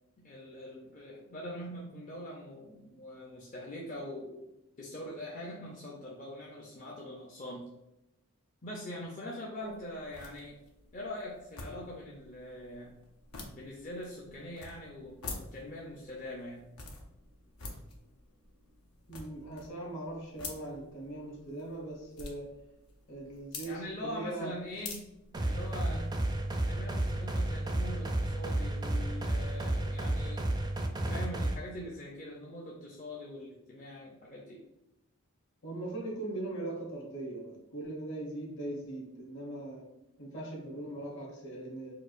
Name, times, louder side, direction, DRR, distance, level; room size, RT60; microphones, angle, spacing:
voice 1, 0.2-4.5 4.8-7.7 8.6-10.6 10.9-13.0 13.5-16.7 23.6-25.1 25.4-26.1 26.7-30.5 31.1-34.6, left 1 dB, 35° left, -3 dB, 0.5 m, -43 dB
sound 1, 9.6-26.1, left 3 dB, 90° left, 0.7 m, -49 dB
voice 2, 19.1-22.6 23.1-24.6 25.9-26.0 35.6-39.8 40.2-41.9, right 2 dB, 60° left, -2 dB, 1.2 m, -40 dB
sound 2, 25.3-31.5, right 1 dB, 20° right, 0.4 m, -32 dB
4.6 x 2.3 x 2.4 m, 0.89 s
head